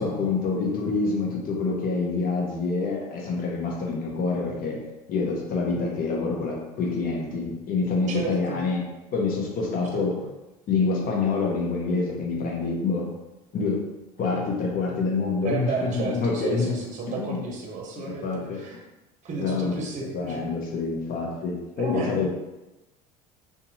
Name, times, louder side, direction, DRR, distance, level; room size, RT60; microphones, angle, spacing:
voice 1, 0.0-4.8 5.1-8.8 9.1-10.1 10.7-13.1 13.5-13.8 14.2-16.7 17.1-17.4 18.0-18.6 19.4-19.7 20.1-22.3, left 4 dB, 50° left, -1 dB, 0.9 m, -26 dB
voice 2, 8.1-8.6 9.9-10.0 15.4-18.8 19.2-20.5 21.7-22.3, right 4 dB, 40° right, 0 dB, 0.8 m, -33 dB
2.7 x 2.6 x 2.7 m, 1.0 s
hypercardioid pair, 75°, 19 cm